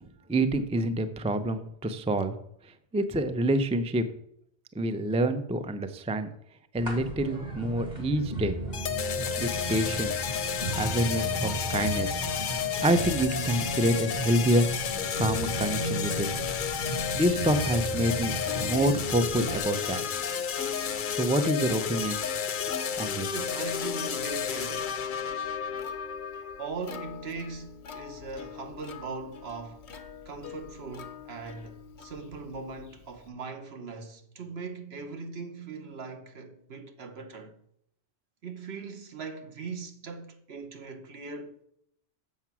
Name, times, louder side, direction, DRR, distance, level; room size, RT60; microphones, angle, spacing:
voice 1, 0.0-2.3 2.9-4.0 4.7-6.3 6.7-8.6 9.4-10.1 10.7-12.3 12.8-14.7 15.2-16.3 17.1-18.3 18.6-20.0 21.1-22.2 23.0-23.3, right 1 dB, 10° right, 0.3 m, -27 dB
sound 1, 6.8-19.6, right 2 dB, 40° right, 2.0 m, -36 dB
sound 2, 8.7-26.7, left 7 dB, 55° left, 0.7 m, -31 dB
Plucked string instrument, 16.5-33.3, left 6 dB, 85° left, 1.1 m, -46 dB
voice 2, 23.3-24.9 26.6-29.9 30.2-37.5 38.4-41.6, right 4 dB, 70° right, 1.3 m, -40 dB
7.3 x 6.8 x 6.0 m
omnidirectional pair, 1.1 m